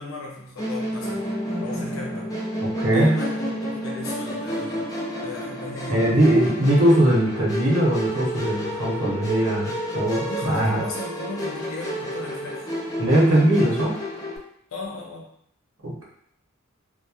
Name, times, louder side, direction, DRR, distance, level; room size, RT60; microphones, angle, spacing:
voice 1, 0.0-1.3 1.6-2.3 2.9-4.9 5.2-6.5 10.2-12.7 14.7-15.3, left 2 dB, 80° left, -1 dB, 0.7 m, -36 dB
Musical instrument, 0.6-14.4, equal, 15° left, 0.4 m, -30 dB
voice 2, 2.8-3.1 5.9-10.8 13.0-13.9 15.8-16.0, right 1 dB, 80° right, -5 dB, 0.9 m, -20 dB
2.9 x 2.1 x 2.3 m, 0.69 s
head